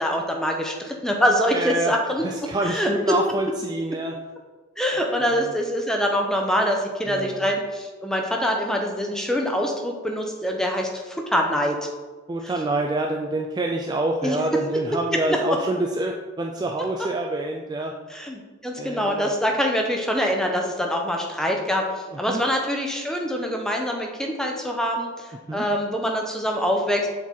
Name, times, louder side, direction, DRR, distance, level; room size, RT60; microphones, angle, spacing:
voice 1, 0.0-2.2 2.6-2.9 4.8-11.9 12.4-12.5 14.2-14.4 15.3-15.4 18.1-27.1, equal, 5° left, 1 dB, 0.7 m, -24 dB
voice 2, 1.5-1.9 2.2-4.2 5.2-5.4 7.1-7.5 12.3-17.9 18.8-19.3 22.3-22.4 25.5-25.7, right 2 dB, 20° right, 1 dB, 0.3 m, -26 dB
7.3 x 4.0 x 4.2 m, 1.4 s
head